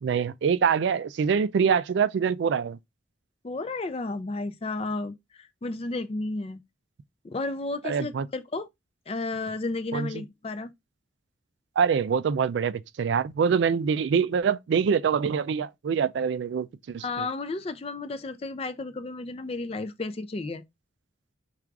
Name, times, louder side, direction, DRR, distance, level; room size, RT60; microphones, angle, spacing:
voice 1, 0.0-2.8 7.8-8.3 9.9-10.2 11.8-17.3, right 6 dB, 70° right, 0.3 m, -25 dB
voice 2, 3.4-6.6 7.2-8.7 9.1-10.7 17.0-20.6, left 3 dB, 30° left, 0.4 m, -33 dB
3.6 x 2.4 x 4.5 m
head